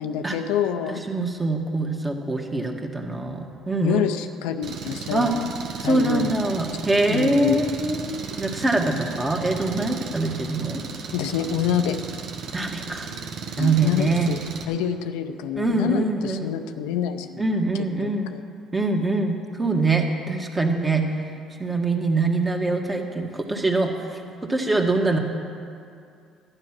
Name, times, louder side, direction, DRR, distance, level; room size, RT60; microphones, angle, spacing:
voice 1, 0.0-1.0 3.8-5.5 5.8-6.3 7.1-7.6 11.1-12.0 13.6-14.4 14.7-17.4 18.0-18.4, left 9 dB, 85° left, 8 dB, 0.6 m, -26 dB
voice 2, 0.9-4.0 5.1-5.3 5.8-10.8 12.5-13.1 13.6-14.3 15.5-16.5 17.4-18.3 18.7-21.1 21.6-25.2, right 2 dB, 20° right, 2 dB, 1.7 m, -24 dB
Engine, 4.6-14.7, right 5 dB, 65° right, 1.1 m, -35 dB
12.0 x 9.7 x 6.0 m, 2.4 s
supercardioid pair, 75°, 0 cm